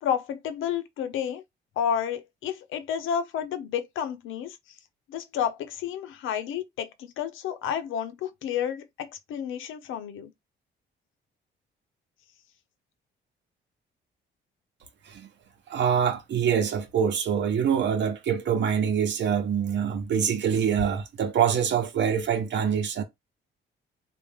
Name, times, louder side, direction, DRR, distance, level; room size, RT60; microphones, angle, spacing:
voice 1, 0.0-1.4 1.8-4.6 5.1-10.3, left 8 dB, 80° left, 0.7 m, -31 dB
voice 2, 15.7-23.0, right 7 dB, 65° right, 1.0 m, -25 dB
3.5 x 2.5 x 3.5 m
cardioid pair, 90°, 20 cm